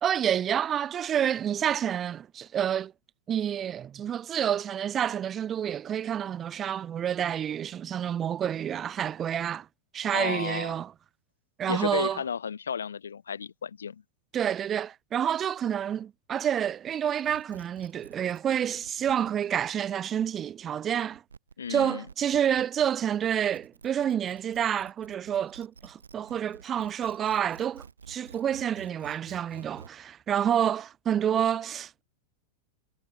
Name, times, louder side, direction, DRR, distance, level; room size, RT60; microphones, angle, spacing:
voice 1, 0.0-2.9 3.3-9.7 9.9-10.9 11.6-12.2 14.3-21.2 21.7-32.0, right 9 dB, 25° right, 1.1 m, -28 dB
voice 2, 10.1-10.8 11.7-14.0 21.6-22.1, left 7 dB, 70° left, 1.7 m, -33 dB
sound 1, 17.1-29.9, right 5 dB, 75° right, 1.9 m, -51 dB
figure-of-eight pair, 90°, 0 cm